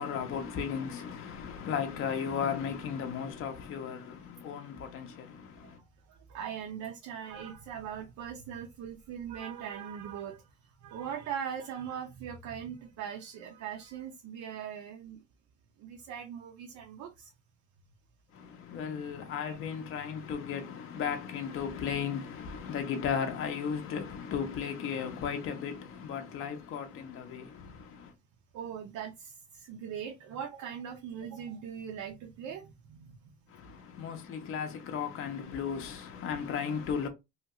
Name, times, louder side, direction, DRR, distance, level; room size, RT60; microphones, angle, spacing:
voice 1, 0.0-5.8 18.3-28.1 33.5-37.1, left 7 dB, 45° left, 0.5 m, -35 dB
voice 2, 6.1-10.4 10.8-15.2 15.8-17.3 19.4-19.6 28.5-33.3, right 8 dB, 70° right, 0.6 m, -40 dB
2.8 x 2.3 x 2.7 m
cardioid pair, 155°, 31 cm